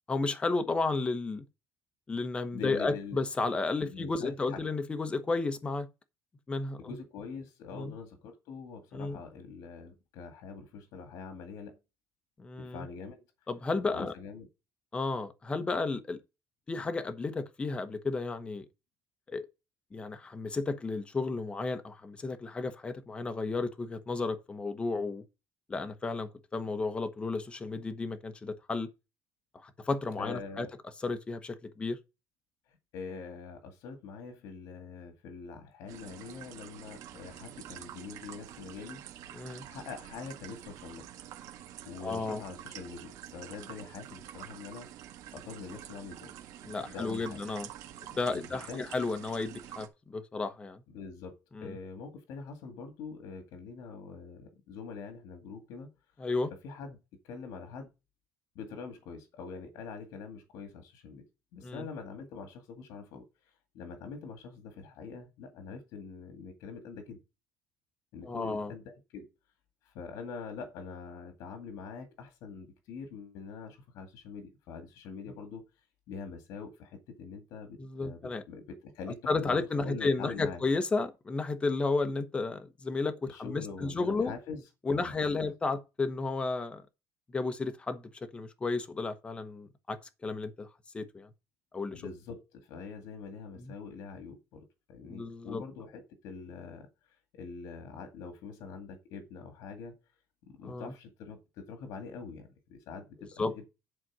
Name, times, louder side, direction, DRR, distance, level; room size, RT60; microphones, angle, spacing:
voice 1, 0.1-1.4 2.1-5.9 6.5-7.0 7.8-7.9 8.9-9.2 12.4-12.9 13.5-14.1 14.9-16.2 16.7-18.6 19.3-19.5 19.9-25.2 25.7-28.9 29.6-30.7 31.0-32.0 39.3-39.7 42.0-42.4 46.6-47.7 48.1-50.8 51.6-51.7 56.2-56.5 61.6-61.8 68.2-68.7 77.8-78.4 79.3-84.3 84.8-86.8 87.3-90.7 90.9-91.3 91.7-92.0 95.1-95.6 100.6-100.9 103.4-103.7, left 3 dB, 15° left, 1.0 m, -33 dB
voice 2, 2.5-3.2 3.8-4.6 6.8-11.8 12.6-13.2 13.9-14.5 30.2-30.7 32.7-39.0 39.6-41.1 41.8-44.9 45.3-46.3 46.9-47.4 48.3-48.9 50.9-55.9 56.6-57.0 57.2-57.9 58.6-61.2 61.5-67.2 68.1-69.3 69.8-78.2 78.5-80.6 83.3-85.2 91.9-100.0 100.5-103.7, left 5 dB, 80° left, 2.1 m, -44 dB
sound 1, 35.9-49.9, right 11 dB, 70° right, 1.7 m, -47 dB
11.0 x 4.2 x 6.1 m
cardioid pair, 155°, 6 cm